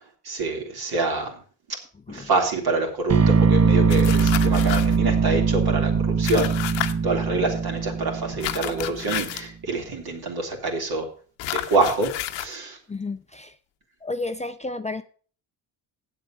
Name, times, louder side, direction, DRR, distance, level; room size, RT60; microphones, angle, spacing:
voice 1, 0.2-1.4 1.7-1.8 2.1-11.1 11.5-12.1 12.3-12.8, right 3 dB, 60° right, 2 dB, 3.4 m, -26 dB
sound 1, 3.1-9.1, right 5 dB, 35° right, 0.9 m, -21 dB
sound 2, 3.9-5.0 6.2-6.9 8.4-9.5 11.4-12.5, left 13 dB, 85° left, 1.0 m, -31 dB
voice 2, 12.9-13.6 14.0-15.0, left 3 dB, 15° left, 7 dB, 0.6 m, -31 dB
8.5 x 7.5 x 6.4 m, 0.42 s
supercardioid pair, 75°, 44 cm